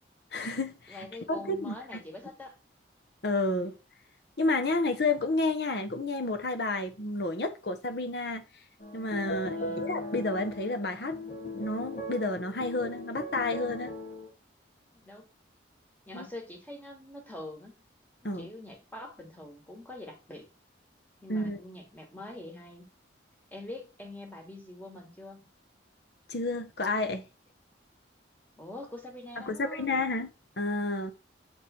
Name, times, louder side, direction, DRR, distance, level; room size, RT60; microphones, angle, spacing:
voice 1, 0.3-1.0 1.3-1.7 3.2-3.8 4.4-8.4 8.9-11.2 11.5-13.9 16.1-16.3 18.2-18.5 21.3-21.6 26.3-27.2 29.4-31.1, left 2 dB, 55° left, 0.9 m, -30 dB
voice 2, 0.9-2.5 9.6-9.9 15.0-15.2 16.0-17.7 18.4-20.5 21.2-22.9 23.5-25.5 28.6-29.9, left 1 dB, 10° left, 1.4 m, -44 dB
sound 1, 8.8-14.3, left 1 dB, 40° left, 1.1 m, -38 dB
7.1 x 3.3 x 4.3 m
head